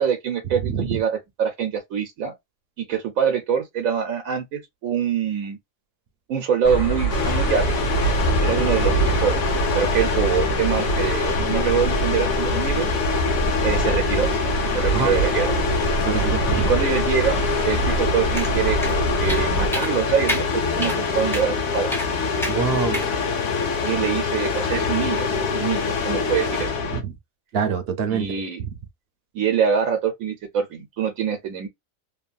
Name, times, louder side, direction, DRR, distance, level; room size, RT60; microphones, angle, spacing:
voice 1, 0.0-2.3 2.8-5.6 6.3-7.9 8.4-9.4 9.7-12.9 13.6-14.3 14.7-15.6 16.7-21.9 23.8-26.9 28.1-28.6 29.3-31.7, right 7 dB, 85° right, 1.1 m, -25 dB
voice 2, 0.6-1.0 14.9-15.1 16.1-16.7 22.5-23.0 26.9-27.1 27.5-28.3 28.6-28.7, right 6 dB, 55° right, 0.8 m, -25 dB
sound 1, 6.6-19.7, right 2 dB, 60° left, 1.4 m, -25 dB
sound 2, 7.1-27.0, left 5 dB, 85° left, 1.3 m, -25 dB
sound 3, 18.4-18.5 18.8-18.9 19.3-19.5 19.7-19.9 20.3-20.4 20.8-21.0 21.3-21.5 21.9-22.1 22.4-22.6 22.9-23.1, equal, 5° left, 0.5 m, -28 dB
3.1 x 2.2 x 2.3 m
omnidirectional pair, 1.4 m